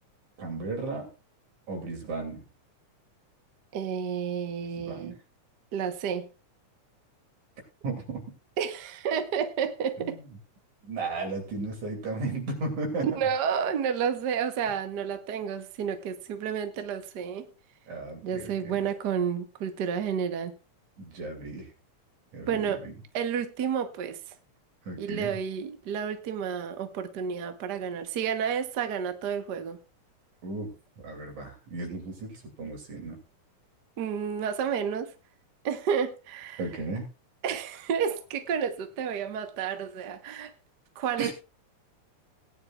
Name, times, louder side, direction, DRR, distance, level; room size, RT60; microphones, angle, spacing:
voice 1, 0.4-1.1 1.7-2.4 4.7-5.2 7.8-8.2 10.0-10.2 10.8-13.1 17.9-18.8 21.0-21.7 22.3-22.9 24.9-25.3 30.4-30.7 31.0-33.2 36.6-37.1 41.2-41.3, right 3 dB, 75° right, 4.2 m, -35 dB
voice 2, 3.7-5.1 5.7-6.3 8.6-10.2 13.0-17.5 18.2-20.5 22.5-22.8 23.1-24.2 25.0-29.8 34.0-35.1 35.6-36.6 37.4-40.5 40.9-41.3, right 7 dB, 55° right, 1.1 m, -30 dB
18.5 x 10.0 x 2.4 m
omnidirectional pair, 3.4 m